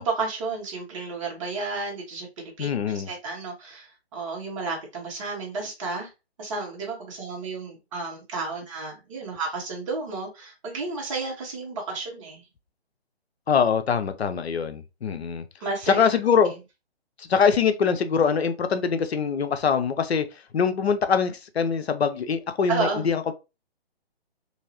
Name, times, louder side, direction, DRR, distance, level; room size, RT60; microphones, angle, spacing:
voice 1, 0.0-6.1 6.4-12.4 15.6-16.0 22.7-23.1, right 3 dB, 30° right, 1.1 m, -32 dB
voice 2, 2.6-3.1 13.5-15.4 15.9-16.5 17.2-20.3 20.5-23.3, left 6 dB, 80° left, 0.6 m, -23 dB
3.1 x 2.7 x 2.8 m
hypercardioid pair, 150°, 32 cm